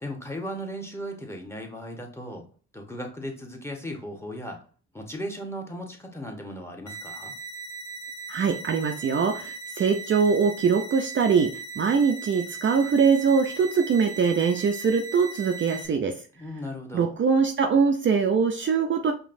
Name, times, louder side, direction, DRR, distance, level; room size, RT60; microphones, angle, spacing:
voice 1, 0.0-2.4 2.7-4.6 4.9-7.3 16.4-17.1, equal, 10° left, 3 dB, 1.1 m, -36 dB
sound 1, 6.9-15.9, right 4 dB, 70° left, 0.9 m, -39 dB
voice 2, 8.3-16.2 16.9-19.1, right 5 dB, 40° right, 4 dB, 0.5 m, -23 dB
5.1 x 2.9 x 2.6 m, 0.40 s
cardioid pair, 90°, 30 cm